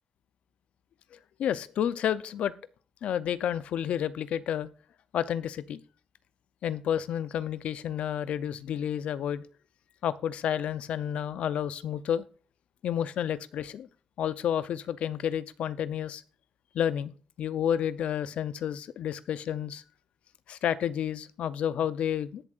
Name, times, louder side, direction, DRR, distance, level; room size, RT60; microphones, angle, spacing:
voice 1, 1.1-2.5 3.0-4.7 5.1-5.8 6.6-9.4 10.0-12.2 12.8-13.9 14.2-16.2 16.7-17.1 17.4-19.8 20.5-22.4, left 9 dB, 80° left, 0.6 m, -30 dB
19.5 x 7.3 x 2.5 m
cardioid pair, 115°, 2 cm